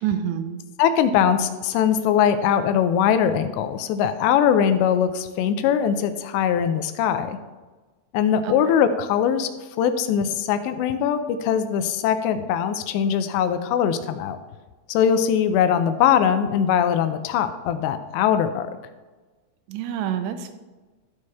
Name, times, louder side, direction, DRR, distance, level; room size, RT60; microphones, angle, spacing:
voice 1, 0.0-0.6 8.4-8.5 19.7-20.5, right 9 dB, 90° right, 8 dB, 2.9 m, -27 dB
voice 2, 0.8-7.4 8.1-9.5 9.8-14.4 14.9-18.7, left 8 dB, 85° left, 10 dB, 2.8 m, -21 dB
13.5 x 5.0 x 4.2 m, 1.3 s
omnidirectional pair, 5.1 m